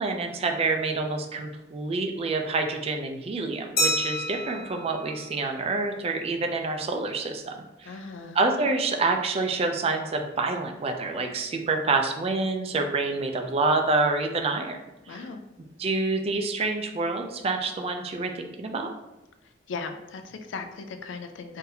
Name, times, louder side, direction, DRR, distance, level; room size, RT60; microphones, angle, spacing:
voice 1, 0.0-7.5 7.8-7.9 8.4-14.8 15.1-15.2 15.8-18.9, right 3 dB, 35° right, 5 dB, 0.3 m, -27 dB
Glass, 3.8-6.2, equal, 60° left, 1.1 m, -30 dB
voice 2, 7.9-8.4 15.1-15.4 19.4-21.6, left 4 dB, 80° left, 7 dB, 0.4 m, -38 dB
3.9 x 2.6 x 2.7 m, 0.95 s
head